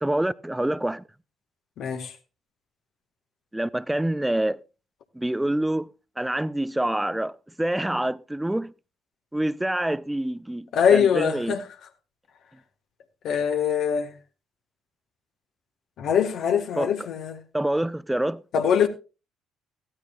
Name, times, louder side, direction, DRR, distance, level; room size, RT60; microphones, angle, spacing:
voice 1, 0.0-1.0 3.5-4.6 5.1-5.9 6.2-8.7 9.3-11.6 16.8-16.9 17.5-18.4, right 1 dB, 10° right, 0.6 m, -26 dB
voice 2, 1.8-2.1 10.7-11.6 13.2-14.1 16.0-17.4 18.5-18.9, left 8 dB, 60° left, 1.6 m, -22 dB
15.0 x 13.0 x 2.5 m
hypercardioid pair, 50°, 0 cm